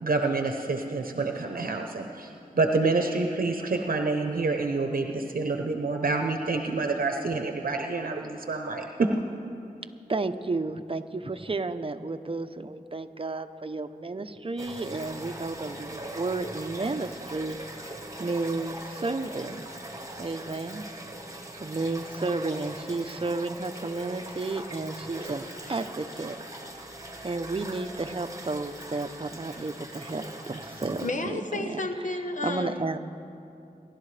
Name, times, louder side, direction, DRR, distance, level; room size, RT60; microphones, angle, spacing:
voice 1, 0.0-2.3 2.5-9.1, right 3 dB, 70° right, 4 dB, 0.8 m, -27 dB
voice 2, 10.1-17.9 18.2-19.7 20.2-20.9 21.6-25.4 25.7-26.4 27.2-31.8 32.4-33.0, right 3 dB, 35° right, 8 dB, 0.7 m, -32 dB
sound 1, 14.6-31.1, right 1 dB, 20° right, 1.6 m, -41 dB
voice 3, 31.0-33.0, left 2 dB, 55° left, 4 dB, 1.2 m, -32 dB
29.5 x 11.5 x 3.3 m, 2.7 s
wide cardioid pair, 50°, 15 cm